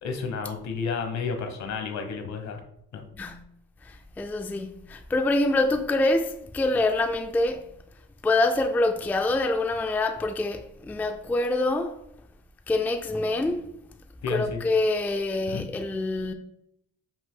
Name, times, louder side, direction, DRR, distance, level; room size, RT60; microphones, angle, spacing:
voice 1, 0.0-2.6 2.9-3.0 14.2-14.6 15.5-15.6, left 5 dB, 65° left, 1.0 m, -31 dB
voice 2, 3.8-7.7 8.2-12.0 12.7-13.7 14.3-16.3, left 2 dB, 5° left, 0.3 m, -26 dB
5.3 x 2.6 x 3.7 m
cardioid pair, 90°, 30 cm